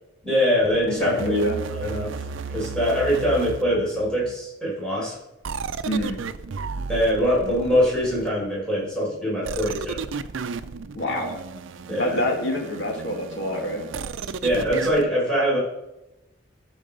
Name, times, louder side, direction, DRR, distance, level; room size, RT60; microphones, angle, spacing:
voice 1, 0.2-1.4 1.7-5.2 6.9-10.0 11.9-12.2 14.4-15.6, equal, 5° left, -7 dB, 5.0 m, -23 dB
sound 1, 0.6-4.3 5.4-8.5 9.4-15.1, right 4 dB, 90° right, 0.5 m, -34 dB
voice 2, 0.9-1.6 5.9-6.2 10.9-11.4 12.0-13.8, left 1 dB, 65° left, 1 dB, 2.1 m, -26 dB
13.5 x 6.3 x 5.4 m, 0.91 s
head